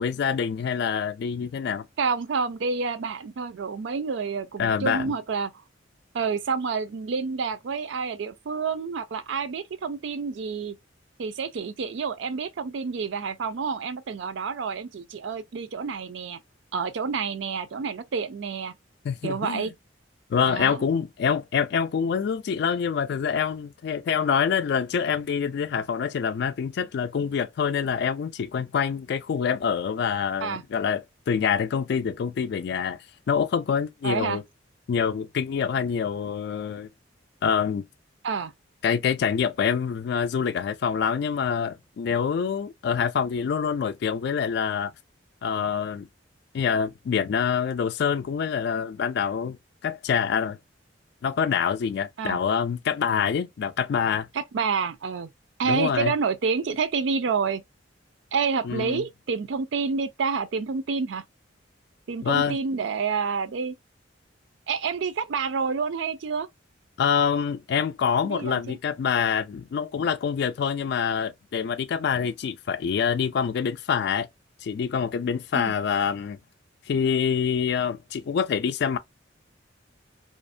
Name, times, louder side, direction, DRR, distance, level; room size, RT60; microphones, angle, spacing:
voice 1, 0.0-1.9 4.6-5.1 19.0-19.7 20.3-33.0 33.3-34.4 34.9-36.9 37.4-37.9 38.8-44.9 45.4-46.1 46.5-49.6 49.8-50.6 51.2-54.3 55.7-56.1 58.6-59.0 62.2-62.6 67.0-74.3 74.6-76.4 76.9-79.0, left 7 dB, 60° left, 0.3 m, -26 dB
voice 2, 2.0-5.5 6.1-10.8 11.2-16.4 16.7-18.7 19.2-19.7 20.5-20.8 30.4-30.6 34.0-34.4 38.2-38.5 52.2-52.4 54.3-55.3 55.6-57.6 58.3-61.2 62.1-63.8 64.7-66.5 68.2-68.8 75.5-75.7, right 5 dB, 70° right, 0.4 m, -28 dB
2.5 x 2.0 x 2.5 m
head